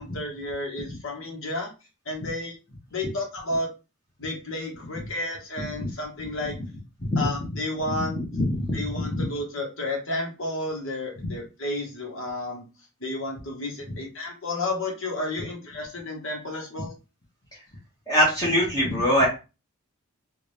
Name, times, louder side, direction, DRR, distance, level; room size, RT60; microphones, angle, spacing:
voice 1, 0.0-1.7 2.1-2.5 2.9-3.7 4.2-6.5 7.2-8.2 8.7-12.7 13.0-16.9, left 2 dB, 55° left, 0 dB, 1.3 m, -31 dB
voice 2, 7.8-9.2 11.2-11.3 13.9-14.0 18.1-19.3, equal, 15° left, -5 dB, 1.2 m, -24 dB
3.6 x 2.6 x 3.2 m, 0.29 s
head